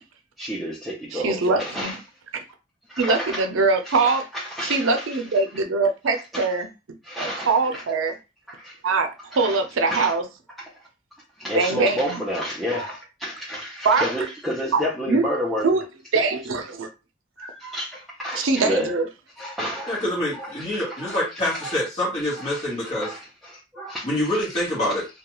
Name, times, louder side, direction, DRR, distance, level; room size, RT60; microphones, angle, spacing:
voice 1, 0.4-2.0 2.9-3.4 3.8-5.2 6.3-6.5 7.0-7.8 8.5-8.8 9.3-9.6 9.9-10.1 10.6-10.7 11.4-15.7 17.4-18.9 19.4-20.0 20.3-21.2 21.5-21.8 22.4-24.1 24.5-24.7, equal, ahead, 0.5 m, -30 dB
voice 2, 1.1-2.0 3.0-4.2 4.6-6.7 7.2-8.1 8.8-10.2 11.5-12.2 13.8-14.1 14.7-14.8 15.1-15.3 15.6-15.8 16.1-16.9 18.4-19.1, right 4 dB, 90° right, 0.5 m, -22 dB
voice 3, 19.9-23.2 24.0-25.1, left 1 dB, 35° left, 1.1 m, -26 dB
2.3 x 2.3 x 2.9 m
head